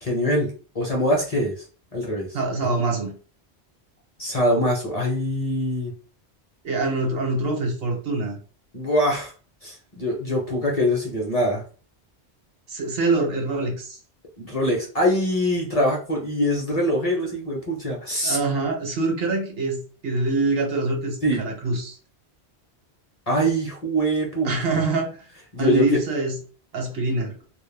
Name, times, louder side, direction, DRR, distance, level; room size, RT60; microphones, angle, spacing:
voice 1, 0.0-1.6 1.9-2.3 4.2-5.9 8.7-9.3 9.6-11.6 14.4-18.4 21.2-21.4 23.3-24.8 25.5-26.0, equal, 40° left, -1 dB, 0.6 m, -23 dB
voice 2, 2.3-3.1 6.6-8.4 12.7-14.0 18.2-22.0 24.4-25.3 25.6-26.4 26.7-27.4, right 3 dB, 65° right, 3 dB, 0.9 m, -25 dB
2.2 x 2.1 x 3.2 m, 0.38 s
omnidirectional pair, 1.1 m